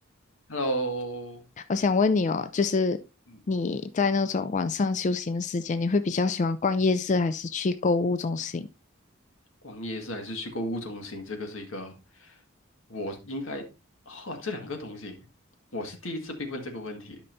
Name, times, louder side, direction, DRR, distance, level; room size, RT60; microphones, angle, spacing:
voice 1, 0.5-1.4 9.6-11.9 12.2-12.3 12.9-13.6 14.1-15.1 15.7-17.2, equal, 85° left, 1.8 m, -34 dB
voice 2, 1.7-3.0 3.5-8.7, left 4 dB, 40° left, 0.4 m, -25 dB
12.0 x 5.6 x 2.6 m
head